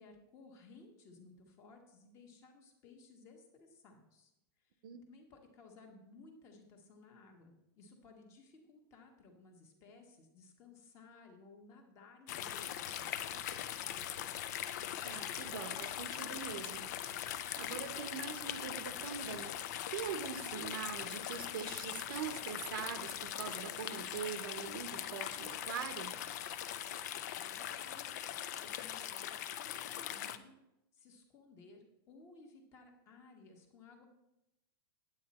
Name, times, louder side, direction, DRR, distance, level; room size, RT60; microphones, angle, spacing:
voice 1, 0.0-4.3 4.6-4.8 5.1-14.3 27.3-30.6 30.9-34.0, left 3 dB, 25° left, 3 dB, 1.3 m, -59 dB
sound 1, 12.3-30.4, left 11 dB, 45° left, 0.5 m, -41 dB
voice 2, 15.0-16.9 17.6-19.5 19.9-26.1, right 8 dB, 60° right, 10 dB, 0.9 m, -43 dB
9.1 x 8.5 x 4.2 m, 0.88 s
supercardioid pair, 175°, 13 cm